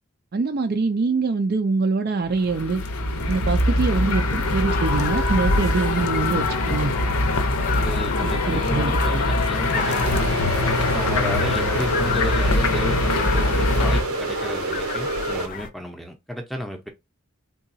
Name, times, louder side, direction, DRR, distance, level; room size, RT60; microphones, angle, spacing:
voice 1, 0.3-2.8 3.3-6.9 8.5-8.9, right 4 dB, 45° right, 0.4 m, -24 dB
sound 1, 2.3-14.0, left 2 dB, 85° left, 0.7 m, -23 dB
sound 2, 4.7-15.7, left 7 dB, 35° left, 0.3 m, -33 dB
voice 2, 7.7-10.3 10.9-16.9, equal, ahead, 0.6 m, -33 dB
sound 3, 9.8-15.5, right 3 dB, 80° right, 0.7 m, -28 dB
3.7 x 2.3 x 2.6 m
head